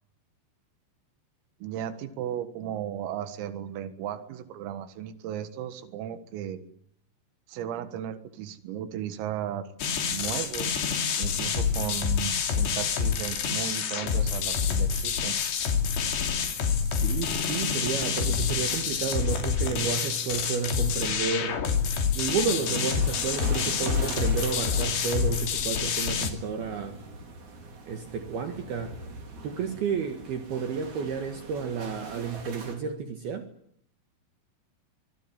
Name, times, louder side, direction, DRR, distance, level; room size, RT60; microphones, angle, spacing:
voice 1, 1.6-6.6 7.5-9.7 10.1-10.9 11.2-15.4, right 10 dB, 90° right, 4.4 m, -35 dB
sound 1, 9.8-26.3, left 6 dB, 60° left, 4.6 m, -27 dB
voice 2, 16.8-21.6 22.1-27.0 27.9-28.9 29.4-33.5, right 6 dB, 60° right, 3.1 m, -31 dB
sound 2, 22.5-32.7, right 4 dB, 40° right, 5.1 m, -41 dB
26.0 x 21.5 x 10.0 m
omnidirectional pair, 5.9 m